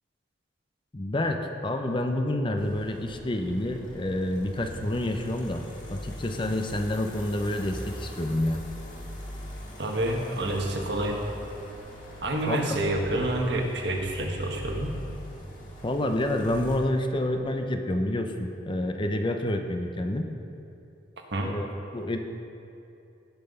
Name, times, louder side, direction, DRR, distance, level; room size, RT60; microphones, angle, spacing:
voice 1, 0.9-5.6 5.9-8.6 12.5-12.6 15.8-20.3 21.4-21.7 21.9-22.2, left 1 dB, 25° left, 5 dB, 0.6 m, -28 dB
sound 1, 2.6-16.8, equal, 45° left, 1.9 m, -42 dB
voice 2, 9.8-11.2 12.2-14.9 21.3-21.5, right 1 dB, 65° right, 1 dB, 1.5 m, -28 dB
17.5 x 5.9 x 5.4 m, 2.7 s
head